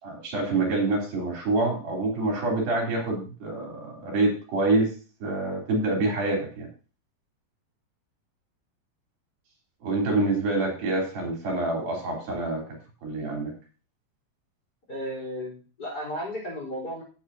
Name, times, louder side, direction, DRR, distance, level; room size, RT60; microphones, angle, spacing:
voice 1, 0.0-4.9 5.2-6.7 9.8-12.6 13.0-13.5, right 2 dB, 85° right, -1 dB, 5.5 m, -26 dB
voice 2, 14.9-17.0, equal, 25° left, -3 dB, 4.3 m, -34 dB
17.5 x 7.4 x 2.8 m, 0.37 s
omnidirectional pair, 4.1 m